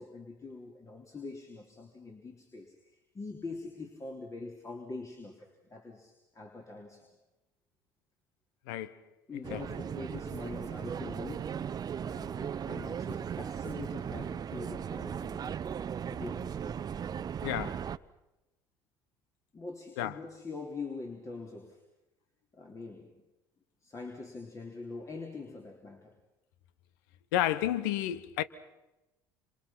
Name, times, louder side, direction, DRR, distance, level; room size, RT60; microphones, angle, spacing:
voice 1, 0.0-7.1 9.3-15.6 16.1-16.9 19.5-21.8 22.5-23.2 23.8-26.2, left 3 dB, 30° left, 3.5 m, -44 dB
voice 2, 8.7-9.0 9.5-9.6 17.4-17.9 20.0-20.1 27.3-28.4, left 12 dB, 75° left, 1.1 m, -31 dB
sound 1, 9.4-18.0, right 8 dB, 35° right, 0.8 m, -37 dB
27.5 x 27.5 x 5.9 m
hypercardioid pair, 70°, 11 cm